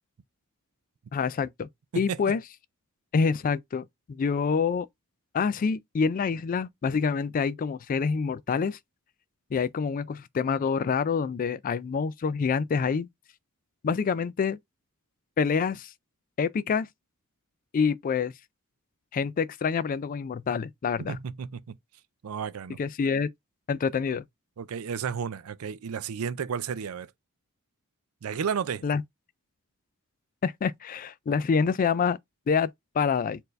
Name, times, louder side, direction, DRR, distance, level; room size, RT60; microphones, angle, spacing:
voice 1, 1.1-1.7 2.0-2.4 3.1-4.9 5.3-8.8 9.5-13.1 13.8-14.6 15.4-15.9 16.4-16.9 17.7-18.3 19.1-21.2 22.8-23.3 23.7-24.2 28.8-29.0 30.4-32.2 32.5-32.7 33.0-33.4, left 5 dB, 40° left, 0.3 m, -26 dB
voice 2, 21.0-21.8 22.2-22.8 24.6-27.1 28.2-28.9, right 6 dB, 75° right, 0.4 m, -32 dB
4.5 x 2.6 x 3.1 m
head